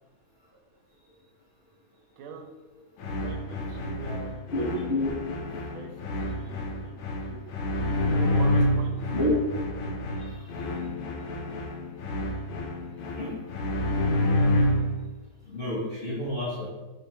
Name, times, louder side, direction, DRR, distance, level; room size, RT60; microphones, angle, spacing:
voice 1, 2.2-2.5 3.2-4.8 5.7-6.8 8.0-9.0, right 4 dB, 80° right, 2 dB, 1.4 m, -42 dB
sound 1, 3.0-15.0, left 1 dB, 80° left, 1.4 m, -28 dB
voice 2, 4.5-5.1 9.1-9.3 10.1-10.7 13.1-13.4 13.9-14.1 15.4-16.7, left 1 dB, 45° left, -9 dB, 0.8 m, -30 dB
3.5 x 2.8 x 4.5 m, 1.2 s
omnidirectional pair, 2.3 m